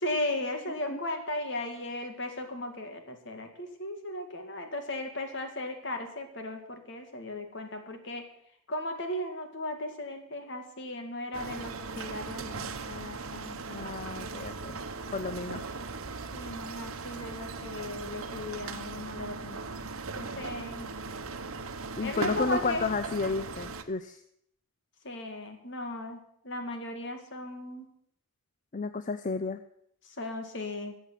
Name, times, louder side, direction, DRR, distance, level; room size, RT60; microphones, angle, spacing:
voice 1, 0.0-8.3 8.7-14.0 16.3-19.9 20.2-20.9 22.0-22.9 25.0-27.9 30.0-30.9, left 1 dB, 55° left, 6 dB, 2.2 m, -36 dB
sound 1, 11.3-23.8, right 4 dB, 75° right, 1.0 m, -39 dB
voice 2, 13.7-14.8 15.1-15.6 22.0-24.2 28.7-29.6, left 4 dB, 35° left, 11 dB, 0.5 m, -32 dB
14.5 x 7.5 x 8.3 m, 0.72 s
head